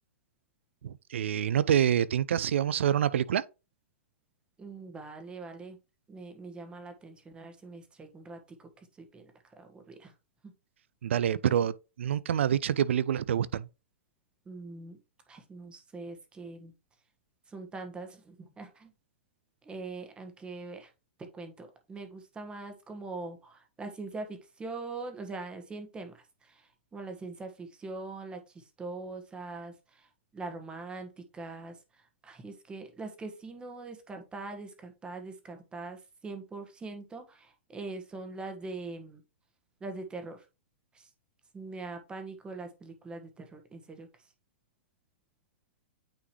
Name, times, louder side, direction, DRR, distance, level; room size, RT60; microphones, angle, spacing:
voice 1, 0.8-3.4 11.0-13.7, right 9 dB, 75° right, 0.5 m, -27 dB
voice 2, 4.6-5.8 6.1-8.7 9.0-9.3 9.6-10.1 14.5-15.0 15.3-16.7 17.5-18.9 19.6-20.9 21.3-26.6 26.9-30.1 30.3-31.7 32.2-39.2 39.8-40.4 40.9-41.1 41.5-44.1, right 3 dB, 15° right, 1.4 m, -42 dB
8.9 x 3.8 x 3.1 m
hypercardioid pair, 125°, 7 cm